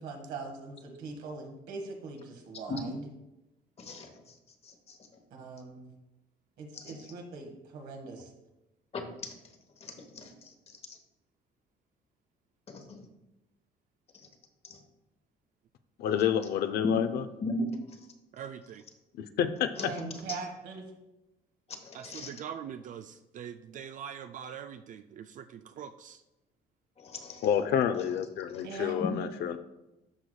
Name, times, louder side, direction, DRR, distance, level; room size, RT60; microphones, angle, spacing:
voice 1, 0.0-3.1 5.3-5.9 6.6-8.3 19.8-20.9 28.6-29.0, right 4 dB, 80° right, 2 dB, 1.6 m, -41 dB
voice 2, 3.8-4.1 4.6-5.0 6.7-6.9 8.9-9.4 9.8-10.5 12.7-13.0 14.7-14.8 16.8-17.0 17.4-17.7 19.8-19.9 21.7-22.3 27.0-27.5 28.5-28.7 29.0-29.1, left 2 dB, 35° left, 5 dB, 1.1 m, -37 dB
voice 3, 16.0-17.2 19.2-19.9 27.4-29.6, left 9 dB, 70° left, 10 dB, 0.6 m, -29 dB
voice 4, 18.3-18.8 21.9-26.2, right 8 dB, 50° right, 9 dB, 0.4 m, -43 dB
12.5 x 4.8 x 2.3 m, 0.95 s
cardioid pair, 110°, 17 cm